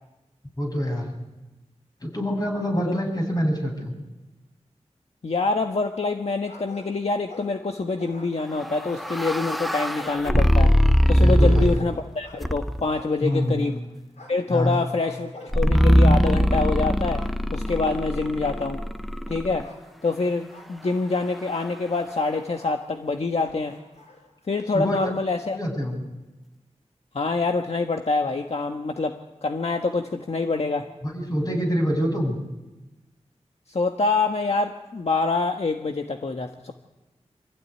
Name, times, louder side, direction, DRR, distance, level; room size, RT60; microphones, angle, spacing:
voice 1, 0.6-1.2 2.0-3.9 11.1-11.7 13.2-13.7 14.5-14.8 24.7-25.0 25.5-26.0 31.0-32.4, equal, 35° left, 2 dB, 7.8 m, -25 dB
voice 2, 5.2-10.7 11.1-13.8 14.3-17.2 17.5-18.8 19.3-19.7 20.0-23.7 24.5-25.6 27.1-30.9 33.7-36.7, left 3 dB, 60° left, 4 dB, 1.5 m, -26 dB
sound 1, 5.8-6.2 6.5-7.7 8.0-13.8 14.2-17.5 17.8-18.7 19.6-19.8 20.5-22.8 23.4-25.2, left 2 dB, 80° left, 5.3 m, -46 dB
sound 2, 8.6-12.0 12.4-13.0 15.5-19.6, equal, ahead, 1.0 m, -21 dB
26.5 x 16.0 x 9.7 m, 1.1 s
wide cardioid pair, 55°, 12 cm